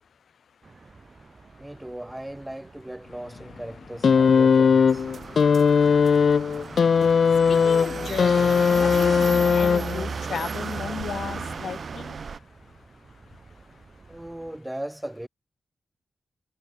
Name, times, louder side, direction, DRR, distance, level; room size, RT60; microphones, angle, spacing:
sound 1, 0.6-14.6, right 4 dB, 35° right, 2.5 m, -53 dB
voice 1, 1.6-5.0 14.1-15.3, right 1 dB, 10° right, 1.3 m, -37 dB
sound 2, 4.0-10.2 11.2-11.4, left 6 dB, 65° left, 0.3 m, -19 dB
sound 3, 4.9-12.4, right 5 dB, 60° right, 0.3 m, -34 dB
voice 2, 7.5-12.1, left 7 dB, 90° left, 1.7 m, -35 dB
wide cardioid pair, 130°, 0 cm